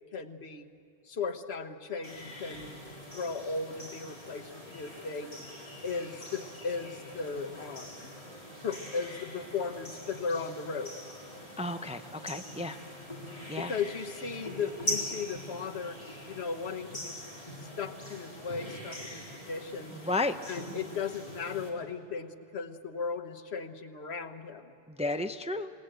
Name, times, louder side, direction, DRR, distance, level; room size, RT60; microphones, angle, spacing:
voice 1, 0.1-0.7 1.1-2.8 3.1-5.3 5.8-8.1 8.6-10.9 13.6-16.0 16.3-17.2 17.8-19.9 20.4-24.7, left 5 dB, 85° left, 9 dB, 1.4 m, -36 dB
sound 1, 2.0-21.7, left 1 dB, 35° left, 4.0 m, -43 dB
sound 2, 2.5-14.9, equal, 90° right, 2.5 m, -55 dB
voice 2, 11.6-12.8 13.5-13.7 20.0-20.4 25.0-25.7, left 2 dB, 10° right, 8 dB, 0.5 m, -32 dB
27.0 x 19.5 x 7.9 m, 2.9 s
omnidirectional pair, 1.1 m